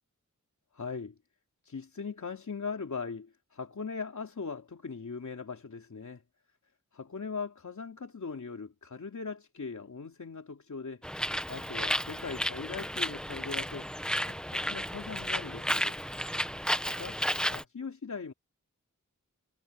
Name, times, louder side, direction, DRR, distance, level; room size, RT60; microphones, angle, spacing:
voice 1, 0.7-1.2 1.6-6.2 6.9-16.1 16.9-17.2 17.5-18.3, left 5 dB, 70° left, 3.0 m, -40 dB
Bird, 11.0-17.6, equal, 5° left, 1.3 m, -33 dB
wide cardioid pair, 65°, 31 cm